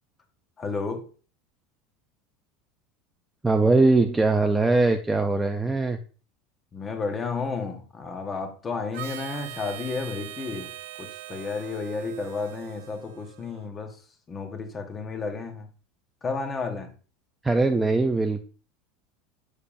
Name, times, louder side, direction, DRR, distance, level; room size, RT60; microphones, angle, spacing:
voice 1, 0.6-1.1 6.7-15.7 16.2-16.9, left 4 dB, 20° left, 0.9 m, -32 dB
voice 2, 3.4-6.0 17.4-18.4, right 3 dB, 5° right, 0.4 m, -21 dB
Harmonica, 8.9-13.7, right 12 dB, 80° right, 0.5 m, -41 dB
6.9 x 6.6 x 2.5 m
supercardioid pair, 165°, 0 cm